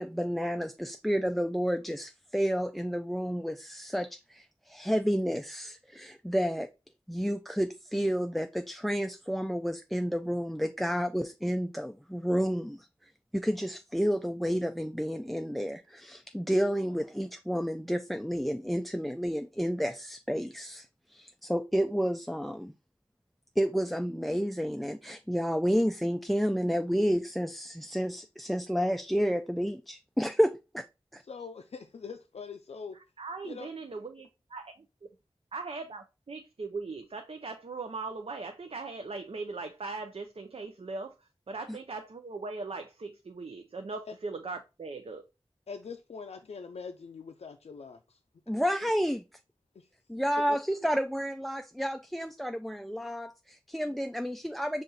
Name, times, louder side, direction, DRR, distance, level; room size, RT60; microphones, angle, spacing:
voice 1, 0.0-6.7 7.1-22.7 23.6-30.8 31.1-31.2 41.7-41.8 48.5-49.2 50.1-54.8, equal, ahead, 0.3 m, -30 dB
voice 2, 31.2-33.0 33.4-33.7 44.1-44.2 45.7-48.2 48.8-48.9 49.7-49.9 50.5-50.6, left 5 dB, 90° left, 0.4 m, -43 dB
voice 3, 33.2-34.9 35.5-45.2, right 3 dB, 65° right, 0.5 m, -39 dB
5.5 x 2.5 x 3.9 m
wide cardioid pair, 55°, 10 cm